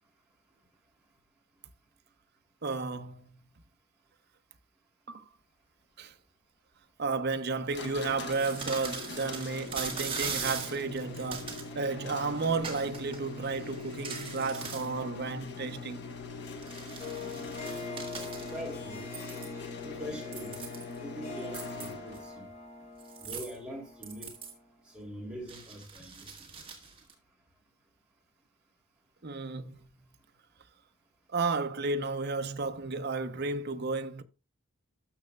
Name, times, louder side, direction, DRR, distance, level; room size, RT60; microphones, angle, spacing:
voice 1, 2.6-3.4 5.1-5.2 6.0-6.1 7.0-16.1 29.2-29.9 31.3-34.2, right 4 dB, 45° right, 0.7 m, -33 dB
sound 1, 7.7-22.4, left 4 dB, 50° left, 1.2 m, -43 dB
sound 2, 8.1-11.7 12.6-13.2 13.5-14.9 16.3-18.7 19.1-19.6 20.2-21.0 21.4-22.2 23.0-23.6 24.0-24.5 25.4-27.1, right 5 dB, 25° right, 1.7 m, -40 dB
Harp, 17.0-24.5, left 3 dB, 35° left, 5.1 m, -43 dB
voice 2, 17.2-17.6 18.5-19.1 19.8-20.5 21.0-22.5 23.2-24.3 24.9-26.3, equal, 5° right, 2.9 m, -43 dB
13.0 x 6.6 x 2.3 m
head